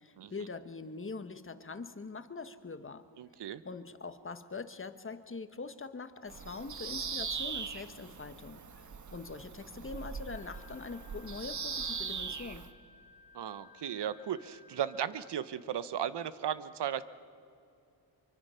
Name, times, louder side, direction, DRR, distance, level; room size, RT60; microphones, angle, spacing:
voice 1, 0.0-3.1 3.6-12.7, left 4 dB, 25° left, 10 dB, 1.3 m, -43 dB
voice 2, 3.2-3.6 13.3-17.1, right 9 dB, 65° right, 15 dB, 1.0 m, -36 dB
Bird vocalization bird call bird song, 6.3-12.7, right 5 dB, 40° right, 1.3 m, -40 dB
Wind instrument woodwind instrument, 10.2-15.7, left 7 dB, 50° left, 1.8 m, -59 dB
24.5 x 24.5 x 5.7 m, 2.6 s
cardioid pair, 60°, 45 cm